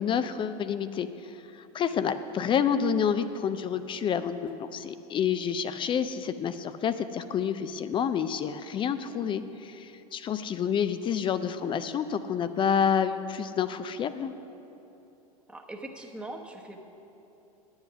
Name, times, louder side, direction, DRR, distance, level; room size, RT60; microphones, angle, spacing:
voice 1, 0.0-14.3, left 7 dB, 25° left, 12 dB, 0.4 m, -29 dB
voice 2, 15.5-16.8, right 1 dB, 5° right, 1 dB, 1.0 m, -42 dB
10.5 x 7.9 x 6.0 m, 2.9 s
hypercardioid pair, 95°, 19 cm